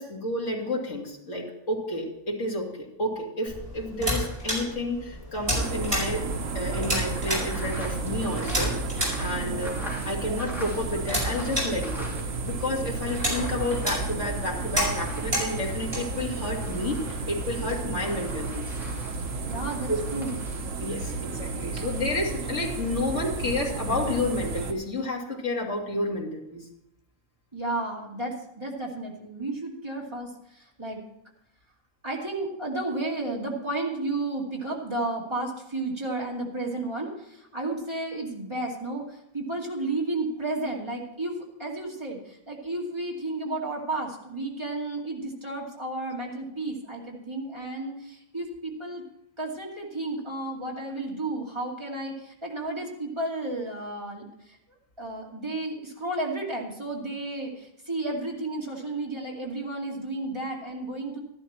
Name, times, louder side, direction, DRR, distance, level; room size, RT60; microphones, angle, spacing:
voice 1, 0.0-6.2 6.5-8.8 9.2-9.7 10.0-12.1 12.4-18.7 19.9-20.0 20.8-26.7, left 1 dB, 70° left, -2 dB, 2.7 m, -30 dB
sound 1, 3.5-17.7, equal, 45° right, 6.0 m, -33 dB
sound 2, 5.5-24.7, right 3 dB, 80° right, 1.4 m, -33 dB
sound 3, 7.5-12.5 12.8-21.4, equal, ahead, 3.5 m, -44 dB
voice 2, 9.3-9.7 19.5-20.3 27.5-31.0 32.0-49.0 49.4-54.6 55.0-61.2, right 2 dB, 20° right, -2 dB, 2.4 m, -32 dB
13.0 x 11.5 x 4.4 m, 0.82 s
omnidirectional pair, 1.3 m